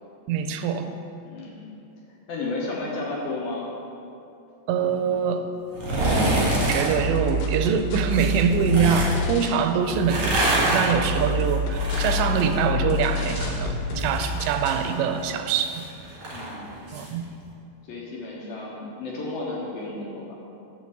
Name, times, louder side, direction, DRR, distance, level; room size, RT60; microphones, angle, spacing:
voice 1, 0.3-0.9 4.7-5.5 6.6-15.8 16.9-17.2, right 7 dB, 85° right, 8 dB, 2.8 m, -24 dB
voice 2, 1.2-1.6 2.3-3.7 16.3-16.9 17.8-20.4, left 2 dB, 70° left, -4 dB, 2.4 m, -33 dB
sound 1, 5.7-6.9 8.1-9.2 9.9-13.4 13.7-17.1 17.4-17.5, right 1 dB, 50° right, 1.9 m, -26 dB
sound 2, 6.5-7.8 10.2-11.5 13.3-14.6, right 1 dB, 70° right, 2.2 m, -35 dB
sound 3, 6.9-9.6 9.9-14.9, left 2 dB, 90° left, 3.4 m, -28 dB
8.1 x 5.1 x 6.6 m, 2.6 s
omnidirectional pair, 5.0 m